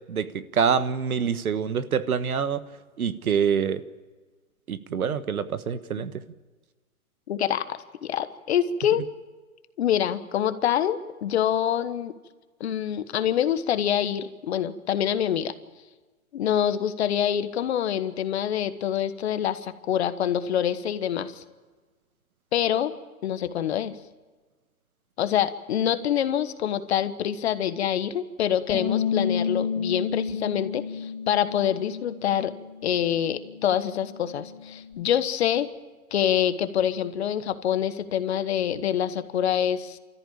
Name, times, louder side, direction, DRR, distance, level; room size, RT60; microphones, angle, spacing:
voice 1, 0.1-2.6 3.0-3.8 4.7-6.1, right 7 dB, 85° right, 12 dB, 1.5 m, -26 dB
voice 2, 7.3-7.6 8.0-9.0 9.8-12.1 12.6-15.5 16.3-21.4 22.5-22.9 23.2-23.9 25.2-32.5 32.8-35.7 36.1-40.0, left 10 dB, 50° left, 12 dB, 1.4 m, -26 dB
Bass guitar, 28.7-34.9, left 6 dB, 20° left, 5.1 m, -32 dB
29.0 x 14.0 x 8.7 m, 1.3 s
hypercardioid pair, 155°, 43 cm